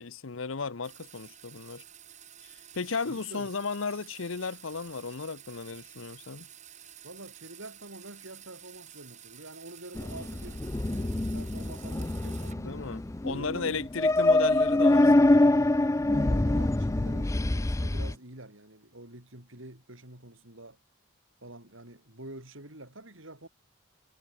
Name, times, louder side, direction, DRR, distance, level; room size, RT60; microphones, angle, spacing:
voice 1, 0.0-1.8 2.4-6.5 12.5-15.5, left 4 dB, 75° left, 0.9 m, -35 dB
sound 1, 0.8-12.7 13.1-14.1, right 10 dB, 35° right, 3.5 m, -51 dB
voice 2, 3.1-3.5 7.0-10.6 10.9-12.6 13.3-13.9 16.0-20.8 21.4-23.5, right 1 dB, 70° right, 6.2 m, -46 dB
sound 2, 9.9-18.1, left 2 dB, 15° left, 0.4 m, -25 dB
head